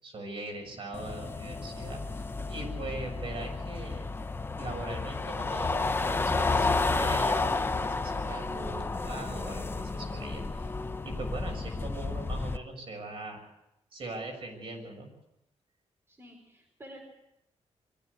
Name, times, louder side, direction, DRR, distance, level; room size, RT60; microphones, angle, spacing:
voice 1, 0.0-2.0 2.4-4.1 4.5-10.7 11.0-13.4 13.9-15.1, right 2 dB, 50° right, 3 dB, 6.7 m, -40 dB
sound 1, 0.9-12.6, left 3 dB, 20° left, 0.8 m, -31 dB
voice 2, 16.1-17.0, equal, 20° right, 2 dB, 4.6 m, -50 dB
23.5 x 15.0 x 8.2 m, 0.85 s
wide cardioid pair, 135°, 12 cm